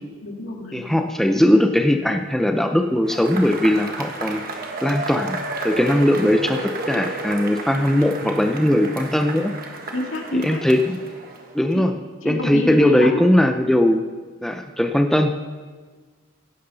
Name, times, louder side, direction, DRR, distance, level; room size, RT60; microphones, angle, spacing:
voice 1, 0.2-0.8 9.9-10.6 11.7-11.9 12.2-13.2, left 1 dB, 70° left, 1 dB, 1.8 m, -28 dB
voice 2, 0.7-4.4 4.8-5.4 5.6-9.5 10.3-11.0 11.5-11.9 12.3-14.0 14.4-15.3, left 1 dB, ahead, 5 dB, 0.5 m, -19 dB
Cheering / Applause / Crowd, 3.0-11.7, right 2 dB, 45° right, 1.3 m, -32 dB
16.0 x 11.0 x 4.0 m, 1.5 s
head